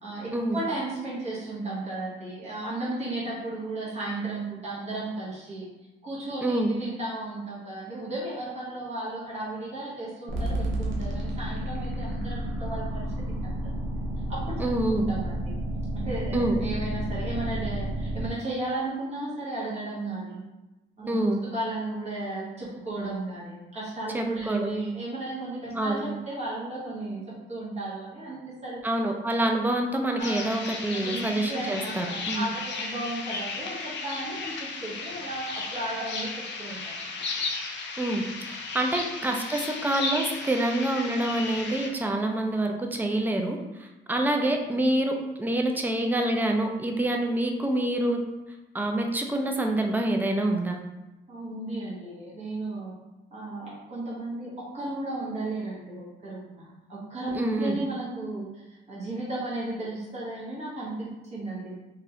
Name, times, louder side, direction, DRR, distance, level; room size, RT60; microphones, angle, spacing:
voice 1, 0.0-5.7 6.0-13.7 14.3-15.3 15.9-20.4 21.0-27.2 27.5-28.8 30.2-30.5 30.9-36.9 51.3-52.9 53.3-58.6 58.9-61.8, right 2 dB, 35° right, -7 dB, 1.1 m, -34 dB
voice 2, 6.4-6.7 14.6-15.0 16.3-16.6 21.1-21.4 24.1-24.7 25.7-26.0 28.8-32.4 38.0-48.2 48.7-50.8 57.3-57.8, right 1 dB, 10° right, 3 dB, 0.4 m, -26 dB
sound 1, 10.3-18.3, right 1 dB, 80° right, 0.6 m, -31 dB
sound 2, 30.2-41.9, left 4 dB, 65° left, 0.5 m, -35 dB
2.9 x 2.6 x 2.7 m, 1.0 s
cardioid pair, 90°, 20 cm